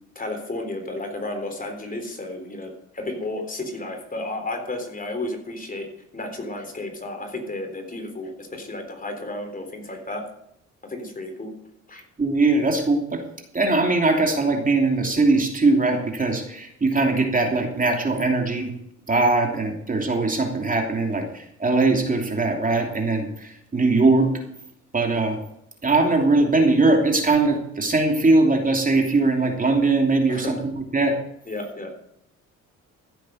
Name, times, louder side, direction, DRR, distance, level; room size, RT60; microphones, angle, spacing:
voice 1, 0.2-5.9 6.1-10.2 10.8-11.5 11.9-12.0 30.3-30.6 31.5-31.9, left 2 dB, 30° left, 4 dB, 3.7 m, -32 dB
voice 2, 12.2-13.2 13.5-18.7 19.1-24.3 24.9-25.4 25.8-31.1, right 3 dB, 25° right, 2 dB, 3.0 m, -21 dB
15.0 x 8.3 x 6.4 m, 0.74 s
cardioid pair, 90°, 30 cm